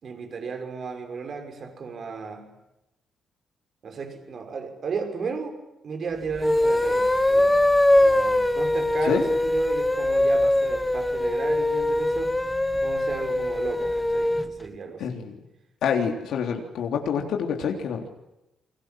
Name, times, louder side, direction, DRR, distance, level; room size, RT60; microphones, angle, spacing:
voice 1, 0.0-2.5 3.8-5.6 5.8-7.5 7.9-12.5 12.8-15.1, right 5 dB, 45° right, 5 dB, 6.1 m, -34 dB
sound 1, 6.3-14.5, left 1 dB, 10° left, 1.2 m, -22 dB
voice 2, 15.0-15.3 15.8-18.1, left 7 dB, 75° left, 2 dB, 3.6 m, -27 dB
29.5 x 24.5 x 7.7 m, 0.91 s
cardioid pair, 155°, 0 cm